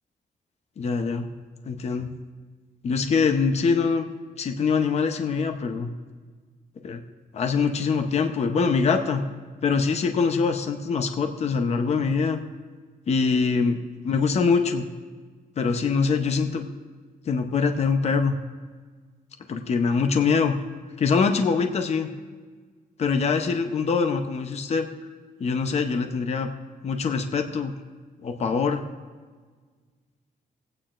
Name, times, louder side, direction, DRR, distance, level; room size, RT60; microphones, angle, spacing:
voice 1, 0.8-1.3 1.7-2.1 2.8-4.1 4.4-5.9 6.8-7.0 7.3-9.3 9.6-12.4 13.1-13.8 14.0-14.9 15.6-16.7 17.3-18.3 19.5-20.6 21.0-22.1 23.0-24.9 25.4-26.5 26.8-27.7 28.2-28.8, left 5 dB, 45° left, 5 dB, 0.7 m, -23 dB
20.0 x 8.8 x 2.5 m, 1.5 s
wide cardioid pair, 155°, 16 cm